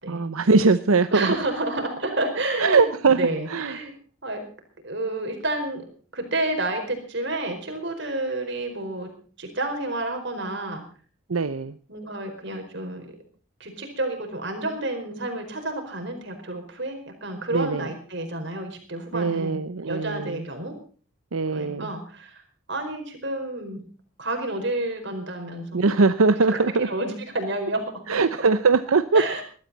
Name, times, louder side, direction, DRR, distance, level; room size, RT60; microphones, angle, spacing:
voice 1, 0.1-1.4 2.6-3.2 3.5-3.8 11.3-11.8 17.5-17.9 19.1-20.4 21.3-21.9 25.7-26.9 28.1-29.2, right 4 dB, 85° right, 11 dB, 0.7 m, -21 dB
voice 2, 1.1-3.9 4.2-4.5 4.8-5.9 6.1-9.1 9.4-10.8 11.9-13.1 13.6-20.7 21.5-22.4 22.7-23.8 24.2-26.1 26.5-28.2 29.1-29.4, right 2 dB, 55° right, 4 dB, 4.7 m, -30 dB
20.5 x 13.0 x 4.1 m, 0.42 s
head